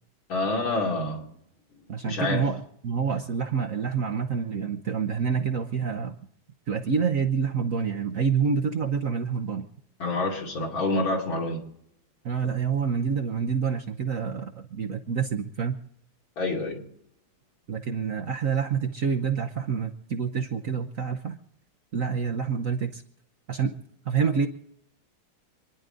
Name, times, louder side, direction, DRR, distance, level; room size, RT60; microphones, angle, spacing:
voice 1, 0.3-1.3 2.0-2.5 10.0-11.6 16.4-16.8, left 2 dB, 75° left, 0 dB, 3.6 m, -27 dB
voice 2, 1.9-6.1 6.7-9.6 12.2-15.8 17.7-21.4 21.9-23.0 23.5-23.7 24.0-24.5, right 6 dB, 50° right, 5 dB, 1.1 m, -27 dB
27.0 x 10.5 x 3.9 m, 0.72 s
omnidirectional pair, 2.2 m